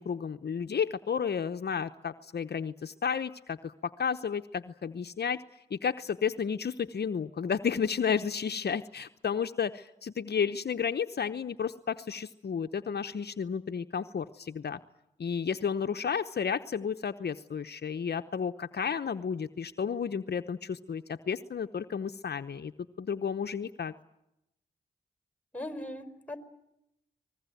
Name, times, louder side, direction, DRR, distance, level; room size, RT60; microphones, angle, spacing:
voice 1, 0.0-5.4 5.7-14.8 15.2-22.7 23.0-23.9, left 7 dB, 55° left, 9 dB, 0.9 m, -32 dB
voice 2, 25.5-26.4, left 1 dB, 5° left, 10 dB, 4.9 m, -39 dB
24.0 x 20.5 x 9.3 m, 0.86 s
supercardioid pair, 40°, 20 cm